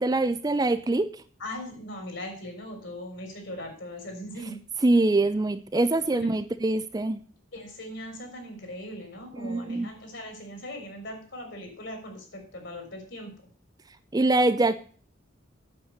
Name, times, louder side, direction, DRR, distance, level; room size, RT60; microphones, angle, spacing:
voice 1, 0.0-1.2 4.8-7.2 9.4-9.9 14.1-14.8, right 2 dB, 20° right, 11 dB, 0.4 m, -24 dB
voice 2, 1.4-4.6 6.1-6.3 7.5-13.3, left 1 dB, 55° left, 4 dB, 4.0 m, -39 dB
8.7 x 7.5 x 6.5 m, 0.44 s
head